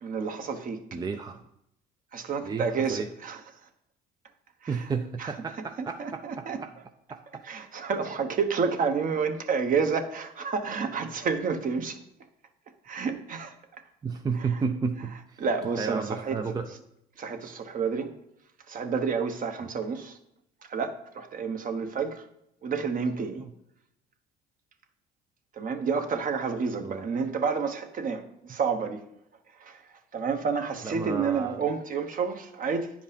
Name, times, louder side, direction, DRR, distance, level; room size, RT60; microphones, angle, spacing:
voice 1, 0.0-0.8 2.1-3.4 4.6-4.8 5.2-5.3 5.8-6.6 7.4-12.0 12.8-13.8 14.4-14.6 15.4-16.4 17.2-18.1 18.7-20.2 20.7-22.3 22.6-23.4 25.5-29.0 29.6-32.9, right 5 dB, 45° right, 1.1 m, -30 dB
voice 2, 0.9-1.4 2.4-3.1 4.7-6.7 7.1-7.4 14.0-15.4 15.8-16.7 19.6-19.7 23.4-23.5 26.8-27.1 30.8-31.7, right 5 dB, 20° right, 0.5 m, -32 dB
9.6 x 5.1 x 5.2 m
cardioid pair, 100°, 19 cm